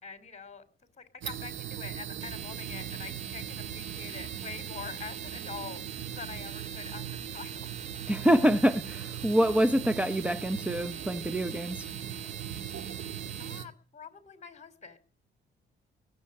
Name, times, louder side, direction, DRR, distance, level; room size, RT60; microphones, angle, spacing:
voice 1, 0.0-0.6 1.0-5.8 6.1-7.7 13.4-15.0, left 6 dB, 35° left, 3.2 m, -45 dB
sound 1, 1.2-13.6, right 10 dB, 70° right, 1.7 m, -39 dB
sound 2, 2.2-13.6, right 3 dB, 35° right, 2.5 m, -49 dB
voice 2, 8.1-11.9, equal, 5° right, 0.7 m, -26 dB
21.0 x 7.8 x 8.7 m
cardioid pair, 90°, 20 cm